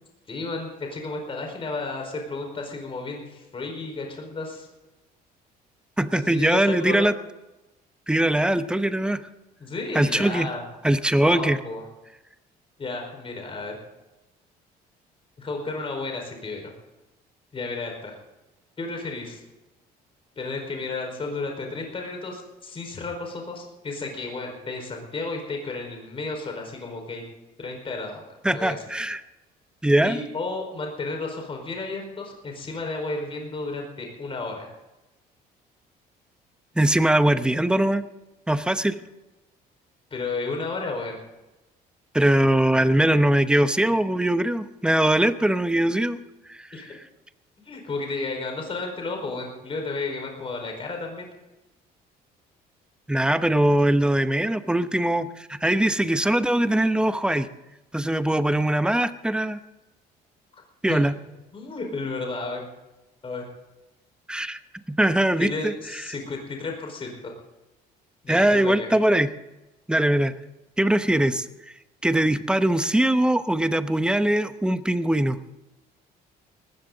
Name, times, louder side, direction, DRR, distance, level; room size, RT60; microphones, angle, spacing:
voice 1, 0.3-4.7 6.1-7.0 9.6-10.6 11.2-11.8 12.8-13.8 15.4-16.7 17.5-18.1 18.8-19.4 20.4-27.2 27.6-28.8 30.0-34.7 40.1-41.2 46.7-46.9 47.7-51.3 60.9-61.0 61.5-62.7 63.2-63.4 65.4-67.3 68.2-68.9, left 3 dB, 30° left, 2 dB, 4.8 m, -32 dB
voice 2, 6.0-7.1 8.1-9.2 9.9-10.5 10.8-11.6 28.4-29.2 29.8-30.2 36.8-38.0 38.5-39.0 42.1-46.2 46.5-47.0 53.1-57.5 57.9-59.6 60.8-61.2 64.3-64.6 64.9-66.0 68.3-69.3 69.9-70.3 70.8-71.4 72.0-75.4, right 1 dB, 5° right, 11 dB, 0.9 m, -21 dB
19.0 x 15.0 x 4.0 m, 1.0 s
cardioid pair, 110°, 17 cm